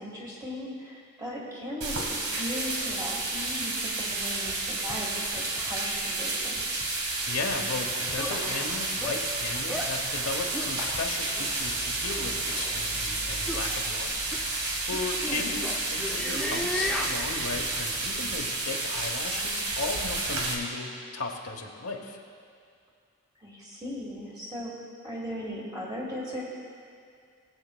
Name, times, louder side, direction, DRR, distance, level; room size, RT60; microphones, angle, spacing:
voice 1, 0.0-6.8 15.2-15.5 23.4-24.7 25.0-26.4, equal, 15° right, -4 dB, 1.5 m, -37 dB
sound 1, 1.8-20.5, right 2 dB, 85° right, 1.4 m, -31 dB
sound 2, 7.1-17.9, equal, 50° right, 2.7 m, -44 dB
voice 2, 7.3-14.2 14.9-22.2, left 3 dB, 75° left, 2 dB, 0.9 m, -36 dB
sound 3, 8.2-8.4 9.0-9.2 9.7-9.9 10.5-10.7 11.4-11.5 12.4-12.7 13.5-13.6 14.3-14.4 14.9-17.2, left 1 dB, 5° left, 0.5 m, -34 dB
18.5 x 8.1 x 2.2 m, 2.3 s
head